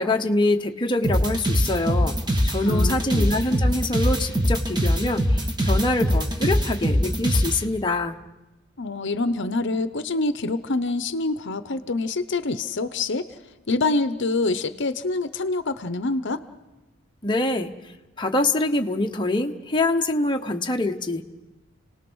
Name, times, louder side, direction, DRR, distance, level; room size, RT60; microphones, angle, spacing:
voice 1, 0.0-2.2 2.4-8.2 17.2-17.7 18.2-21.2, left 2 dB, 20° left, 3 dB, 1.0 m, -24 dB
sound 1, 1.0-7.6, equal, 20° right, 1.7 m, -22 dB
voice 2, 2.6-3.4 8.8-13.3 13.7-16.4, left 3 dB, 60° left, 12 dB, 0.8 m, -26 dB
30.0 x 18.5 x 6.3 m, 1.1 s
head